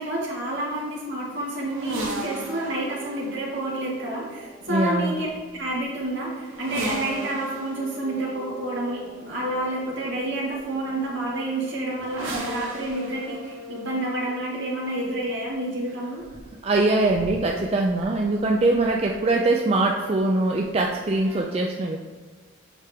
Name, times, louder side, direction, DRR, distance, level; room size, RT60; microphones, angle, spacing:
voice 1, 0.0-5.3 5.5-16.2, right 1 dB, 60° right, -5 dB, 2.0 m, -29 dB
sound 1, 1.6-19.4 20.5-21.4, right 1 dB, 75° right, 1.3 m, -38 dB
voice 2, 4.7-5.1 16.6-22.0, right 2 dB, 30° right, 0 dB, 0.3 m, -22 dB
7.3 x 5.0 x 3.5 m, 1.4 s
head